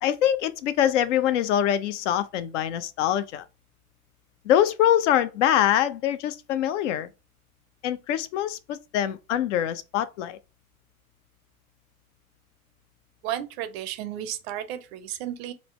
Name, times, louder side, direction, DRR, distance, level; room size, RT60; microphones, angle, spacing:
voice 1, 0.0-3.5 4.4-7.1 7.8-10.4, left 11 dB, 55° left, 0.5 m, -24 dB
voice 2, 13.2-15.5, right 11 dB, 45° right, 0.5 m, -33 dB
3.8 x 2.0 x 3.1 m
figure-of-eight pair, 85°, 44 cm